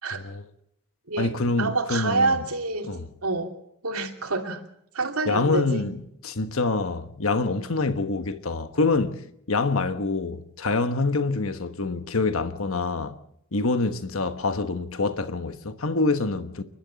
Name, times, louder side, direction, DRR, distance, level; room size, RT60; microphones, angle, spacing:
voice 1, 0.1-0.5 1.2-2.4 2.8-3.1 5.2-13.2 13.5-16.6, left 3 dB, 65° left, 1.2 m, -26 dB
voice 2, 1.6-2.9 3.2-3.5 3.8-4.6 4.9-5.8, right 3 dB, 80° right, 2.8 m, -27 dB
29.0 x 12.0 x 7.5 m
head